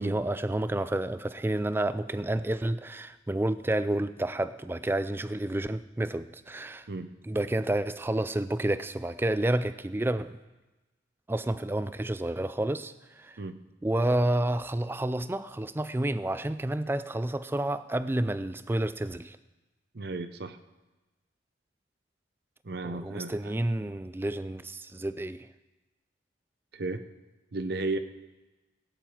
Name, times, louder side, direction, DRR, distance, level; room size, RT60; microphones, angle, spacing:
voice 1, 0.0-6.9 7.3-10.4 11.3-13.4 13.8-19.4 22.8-25.5, right 1 dB, 10° right, 13 dB, 0.3 m, -30 dB
voice 2, 19.9-20.6 22.6-23.5 26.7-27.0 27.5-28.0, right 2 dB, 55° right, 10 dB, 0.7 m, -34 dB
17.0 x 9.1 x 4.4 m, 1.1 s
head